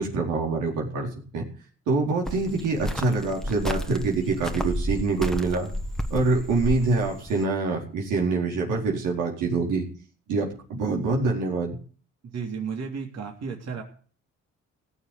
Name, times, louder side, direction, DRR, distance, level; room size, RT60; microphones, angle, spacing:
voice 1, 0.0-1.4 1.9-5.7 6.1-9.8 10.3-11.8, right 3 dB, 90° right, -1 dB, 4.4 m, -25 dB
Cricket, 2.3-7.4, equal, ahead, 1.3 m, -32 dB
voice 2, 12.3-13.8, right 6 dB, 60° right, 0 dB, 3.4 m, -33 dB
17.0 x 6.9 x 8.5 m, 0.43 s
cardioid pair, 90°, 30 cm